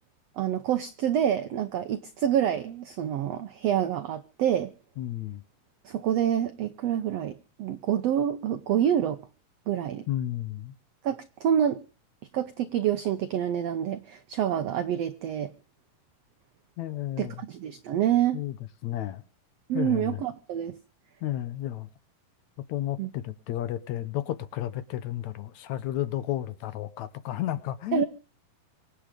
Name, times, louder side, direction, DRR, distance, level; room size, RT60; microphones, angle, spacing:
voice 1, 0.4-4.7 5.8-9.3 9.7-10.1 11.0-11.8 12.3-15.5 17.2-18.4 19.7-20.8 23.0-23.1 27.9-28.0, right 10 dB, 85° right, 1.4 m, -27 dB
voice 2, 5.0-5.4 10.1-10.7 16.8-17.4 18.3-18.6 18.8-19.2 19.7-20.2 21.2-21.9 22.7-28.1, left 13 dB, 70° left, 1.9 m, -32 dB
25.0 x 8.8 x 5.2 m
omnidirectional pair, 4.0 m